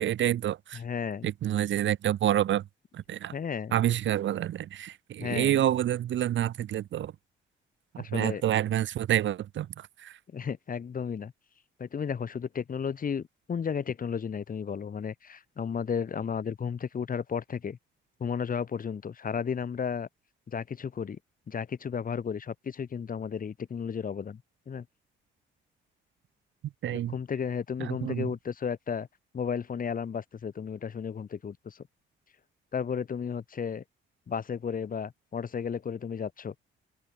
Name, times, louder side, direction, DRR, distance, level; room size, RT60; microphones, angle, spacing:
voice 1, 0.0-0.8 1.2-2.6 2.9-3.3 3.7-7.1 7.9-10.2 26.8-27.1 27.8-28.3, right 11 dB, 70° right, 2.2 m, -28 dB
voice 2, 0.7-1.3 3.3-3.8 5.2-5.6 8.0-8.4 10.3-11.3 11.8-17.8 18.2-20.1 20.5-21.2 21.5-24.4 24.7-24.8 26.9-29.1 29.3-31.8 32.7-33.8 34.3-36.5, left 7 dB, 45° left, 2.8 m, -33 dB
open air
cardioid pair, 90°, 20 cm